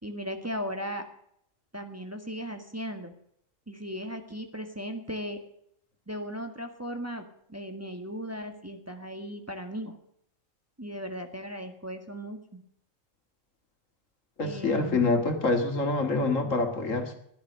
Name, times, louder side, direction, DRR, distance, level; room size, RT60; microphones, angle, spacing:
voice 1, 0.0-1.1 1.7-3.1 3.7-5.4 6.1-10.0 10.8-12.6 14.4-15.1 16.5-16.6, equal, 10° right, 5 dB, 1.6 m, -37 dB
voice 2, 14.4-17.2, left 3 dB, 75° left, 5 dB, 2.4 m, -26 dB
16.0 x 11.0 x 6.6 m, 0.71 s
omnidirectional pair, 1.3 m